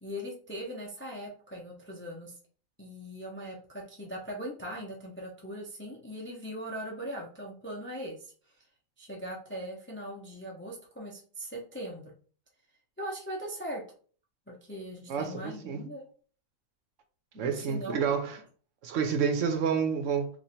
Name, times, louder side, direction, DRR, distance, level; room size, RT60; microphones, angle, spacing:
voice 1, 0.0-2.4 2.8-8.3 9.0-12.1 13.0-13.8 14.5-16.0 17.3-18.0, equal, 15° left, 0.4 m, -40 dB
voice 2, 15.1-15.8 17.4-18.4 18.8-20.3, right 6 dB, 70° right, 1.0 m, -29 dB
3.0 x 2.4 x 4.1 m
omnidirectional pair, 1.4 m